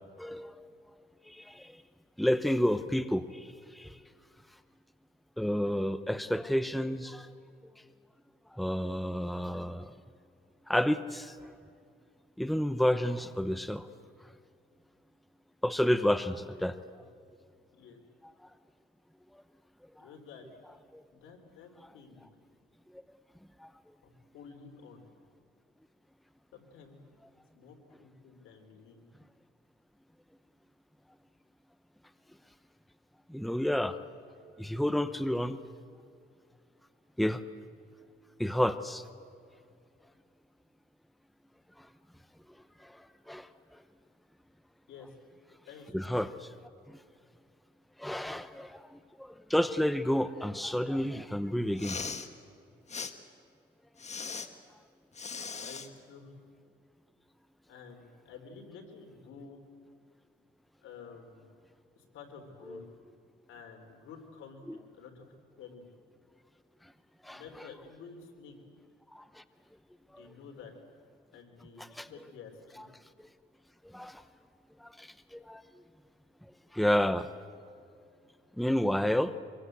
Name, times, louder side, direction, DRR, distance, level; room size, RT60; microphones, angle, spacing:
voice 1, 0.2-0.6 1.2-1.8 2.2-4.0 5.4-7.3 8.5-9.9 10.7-11.5 12.4-13.9 15.6-16.8 20.0-20.1 20.9-21.0 23.6-23.7 33.3-34.0 34.6-35.6 37.2-37.4 38.4-39.0 41.8-41.9 42.8-43.5 45.9-46.5 46.9-47.0 48.0-52.1 62.7-62.8 67.2-67.4 69.1-69.4 70.1-70.2 71.8-72.1 73.8-74.2 74.8-75.6 76.7-77.3 78.6-79.4, equal, ahead, 12 dB, 0.9 m, -30 dB
voice 2, 20.0-20.5 21.1-22.3 24.0-25.0 26.5-26.9 27.5-29.0 44.9-45.1 45.6-46.2 55.6-56.3 57.7-59.6 60.8-61.5 62.0-62.8 63.5-65.3 65.6-65.9 67.3-68.6 70.2-70.7 71.3-72.9, left 5 dB, 85° left, 4 dB, 4.0 m, -51 dB
Respiratory sounds, 51.7-52.3 52.9-53.1 54.0-54.5 55.1-55.9, left 5 dB, 35° left, 1.7 m, -38 dB
25.0 x 22.5 x 8.2 m, 2.3 s
cardioid pair, 90°, 20 cm